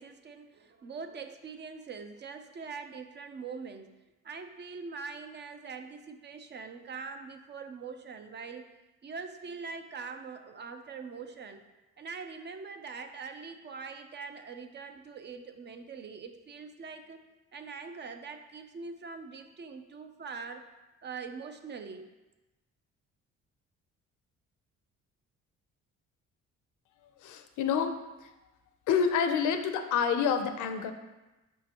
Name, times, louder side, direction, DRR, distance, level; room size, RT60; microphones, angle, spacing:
voice 1, 0.0-3.9 4.2-8.6 9.0-11.6 12.0-17.2 17.5-20.7 21.0-22.1, right 5 dB, 35° right, 8 dB, 0.4 m, -43 dB
voice 2, 27.2-27.9 28.2-28.3 28.9-30.9, left 7 dB, 80° left, 8 dB, 0.5 m, -28 dB
5.0 x 3.7 x 2.9 m, 1.1 s
cardioid pair, 90°, 30 cm